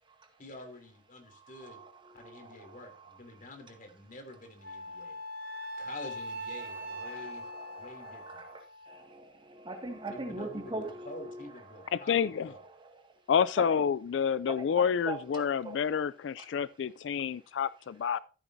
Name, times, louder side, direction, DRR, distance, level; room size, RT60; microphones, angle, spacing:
voice 1, 0.4-1.8 2.1-5.2 5.8-7.5 7.8-8.4 10.1-12.6, left 1 dB, 50° left, 3.0 m, -47 dB
voice 2, 1.3-3.2 6.9-11.4 11.8-11.9 12.5-13.1 13.7-13.8 14.6-15.8 16.4-16.5, right 2 dB, 25° right, 2.0 m, -43 dB
Wind instrument woodwind instrument, 4.6-9.0, equal, 55° right, 1.4 m, -41 dB
voice 3, 11.9-12.5 13.3-18.2, left 7 dB, 80° left, 0.3 m, -29 dB
14.0 x 8.9 x 2.7 m
head